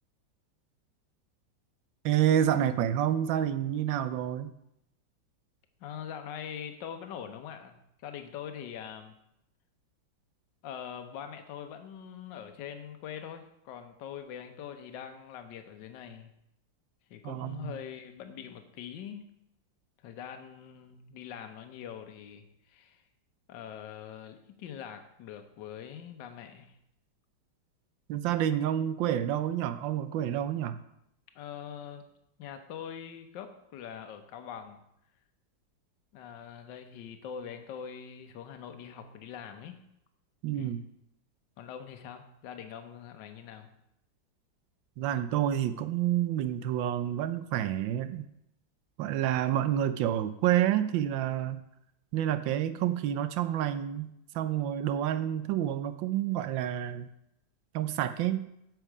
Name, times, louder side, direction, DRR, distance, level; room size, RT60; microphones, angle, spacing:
voice 1, 2.0-4.5 17.2-17.8 28.1-30.8 40.4-40.8 45.0-48.3 49.0-51.6 52.1-57.1 57.7-58.5, right 11 dB, 80° right, 12 dB, 1.4 m, -29 dB
voice 2, 5.8-9.2 10.6-16.3 17.1-19.3 20.0-23.0 23.5-26.8 31.3-32.1 32.4-34.8 36.1-39.8 40.5-40.8 41.6-43.7, left 8 dB, 70° left, 7 dB, 1.5 m, -43 dB
8.0 x 7.4 x 4.9 m, 0.80 s
omnidirectional pair, 2.1 m